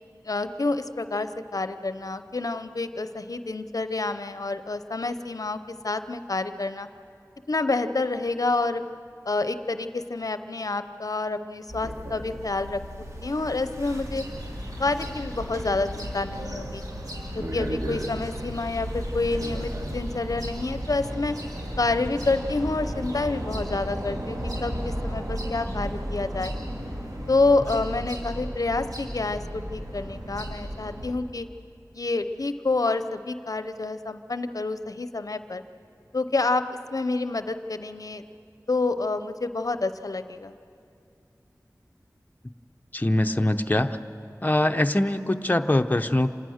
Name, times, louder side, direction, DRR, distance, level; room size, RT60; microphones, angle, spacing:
voice 1, 0.2-5.6 5.8-6.9 7.5-8.8 9.3-12.8 13.2-14.2 14.8-16.8 17.4-21.4 21.8-26.5 27.3-31.5 31.9-35.6 36.1-38.2 38.7-40.5, left 3 dB, 65° left, 10 dB, 0.7 m, -28 dB
sound 1, 11.7-20.8, equal, 50° right, 2.2 m, -38 dB
sound 2, 13.8-31.1, equal, 70° right, 3.2 m, -34 dB
voice 2, 42.9-44.0 44.4-46.3, left 1 dB, 25° left, 7 dB, 0.8 m, -23 dB
27.0 x 18.5 x 6.5 m, 2.5 s
wide cardioid pair, 50°, 7 cm